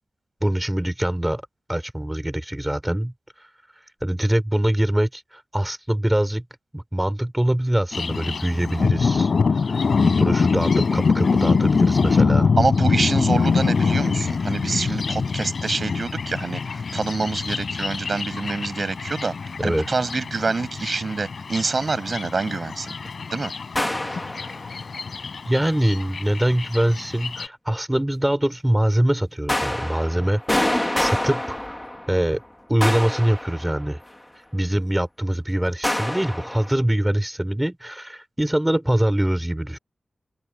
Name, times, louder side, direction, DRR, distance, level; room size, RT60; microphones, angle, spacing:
voice 1, 0.4-1.4 1.7-3.1 3.8-6.4 6.7-9.3 9.7-12.5 14.8-15.0 19.6-19.9 20.8-21.0 25.4-31.8 32.1-32.4 32.7-34.0 34.5-39.8, right 1 dB, 10° right, 5.0 m, -23 dB
Thunder, 7.9-27.5, left 5 dB, 65° left, 6.8 m, -24 dB
voice 2, 12.6-19.3 19.6-22.9 23.3-23.5, right 4 dB, 50° right, 8.0 m, -26 dB
sound 1, 23.8-24.9 29.5-32.3 32.8-34.1 35.8-36.7, left 1 dB, 15° left, 2.5 m, -26 dB
open air
cardioid pair, 65°, 0 cm